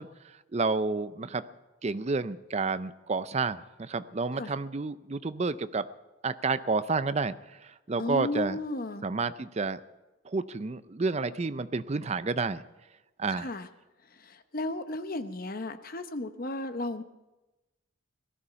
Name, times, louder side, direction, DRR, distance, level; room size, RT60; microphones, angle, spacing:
voice 1, 0.0-1.4 1.8-5.9 6.2-8.6 9.0-9.8 10.2-12.6 13.2-13.5, right 4 dB, 30° right, 14 dB, 0.5 m, -30 dB
voice 2, 8.0-9.0 13.3-13.7 14.1-17.0, left 2 dB, 40° left, 10 dB, 0.8 m, -34 dB
18.0 x 13.0 x 5.7 m, 1.1 s
head